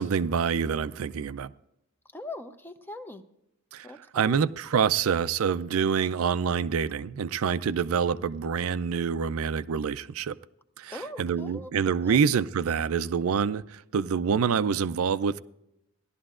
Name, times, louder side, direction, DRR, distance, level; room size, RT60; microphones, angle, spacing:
voice 1, 0.0-1.5 3.7-3.9 4.1-10.3 10.8-10.9 11.2-15.4, right 6 dB, 75° right, 14 dB, 0.4 m, -26 dB
voice 2, 2.1-3.2 3.8-4.5 10.9-11.7 12.0-12.2, left 2 dB, 10° left, 9 dB, 0.6 m, -41 dB
17.5 x 12.0 x 2.4 m, 0.84 s
head